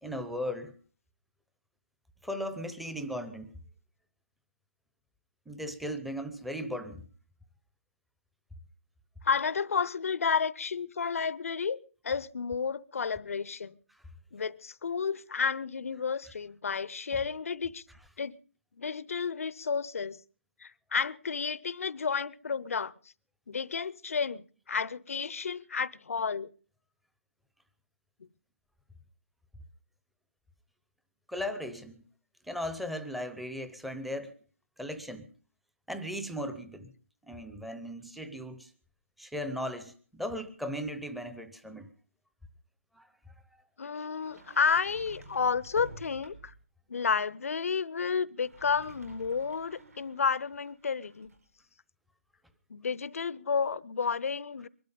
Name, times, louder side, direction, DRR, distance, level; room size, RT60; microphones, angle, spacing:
voice 1, 0.0-0.7 2.2-3.5 5.5-7.0 31.3-32.0 32.5-34.3 34.8-35.3 35.9-36.9 37.3-38.7 39.2-41.9 43.0-43.1, equal, ahead, 0.7 m, -37 dB
voice 2, 9.2-13.8 14.3-17.8 18.2-18.4 18.8-20.2 20.6-22.9 23.5-26.5 28.2-28.3 43.8-46.5 46.9-51.3 52.7-54.7, left 5 dB, 70° left, 0.7 m, -31 dB
Sliding door, 44.1-46.7 48.3-51.5, right 3 dB, 85° right, 5.0 m, -51 dB
22.5 x 12.0 x 5.3 m
hypercardioid pair, 160°, 8 cm